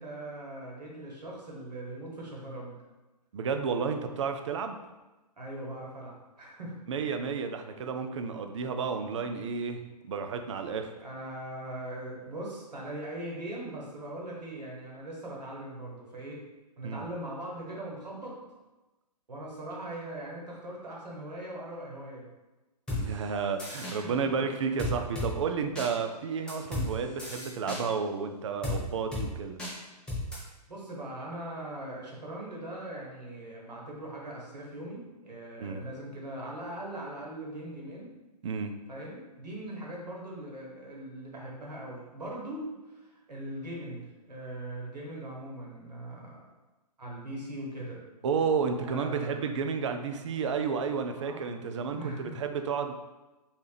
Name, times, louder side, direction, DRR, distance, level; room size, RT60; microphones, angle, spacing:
voice 1, 0.0-2.7 5.4-6.8 10.7-16.4 16.8-18.4 19.3-22.3 24.0-24.1 30.7-38.1 38.9-44.0 44.3-46.4 47.0-48.0 48.9-49.5 51.1-51.6 51.9-52.4, right 1 dB, 80° right, -3 dB, 1.3 m, -40 dB
voice 2, 3.3-4.8 6.9-9.8 10.1-10.9 16.8-17.1 23.0-29.6 35.6-35.8 38.4-38.7 48.2-52.9, right 5 dB, 45° right, 6 dB, 0.4 m, -31 dB
sound 1, 22.9-23.0 23.6-24.0 24.8-25.3 25.8-25.9 26.5-26.9 27.2-27.8 28.6-28.8 29.1-29.3 29.6-29.7 30.1-30.4, left 2 dB, 5° left, 0.6 m, -33 dB
3.2 x 2.8 x 3.3 m, 1.1 s
figure-of-eight pair, 125°, 21 cm